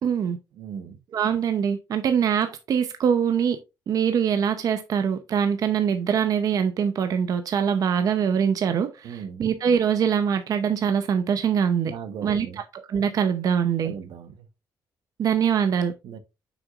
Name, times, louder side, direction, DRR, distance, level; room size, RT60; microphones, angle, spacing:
voice 1, 0.0-0.4 1.1-3.6 3.9-11.9 12.2-13.9 15.2-15.9, right 7 dB, 55° right, 0.7 m, -23 dB
voice 2, 0.6-1.0 9.0-9.5 11.8-12.6 13.8-14.5 16.0-16.2, right 7 dB, 80° right, 1.0 m, -38 dB
7.7 x 6.1 x 2.4 m
cardioid pair, 130°, 8 cm